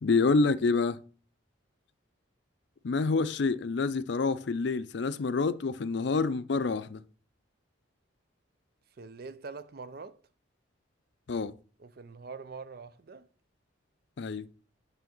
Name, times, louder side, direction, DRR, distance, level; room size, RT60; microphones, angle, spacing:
voice 1, 0.0-1.0 2.8-7.0 11.3-11.5 14.2-14.5, left 4 dB, 60° left, 0.4 m, -27 dB
voice 2, 9.0-10.2 11.8-13.3, right 4 dB, 50° right, 0.5 m, -44 dB
7.0 x 3.4 x 6.0 m
head